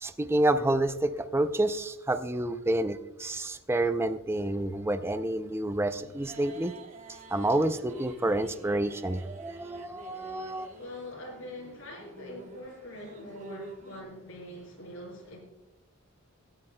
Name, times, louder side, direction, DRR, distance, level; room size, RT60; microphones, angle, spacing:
voice 1, 0.0-6.8 7.3-10.7, right 1 dB, 10° right, 9 dB, 0.5 m, -29 dB
sound 1, 5.9-14.0, right 2 dB, 35° right, 1.2 m, -49 dB
voice 2, 10.8-15.4, left 1 dB, 70° left, -4 dB, 4.6 m, -43 dB
25.0 x 9.8 x 2.2 m, 1.0 s
head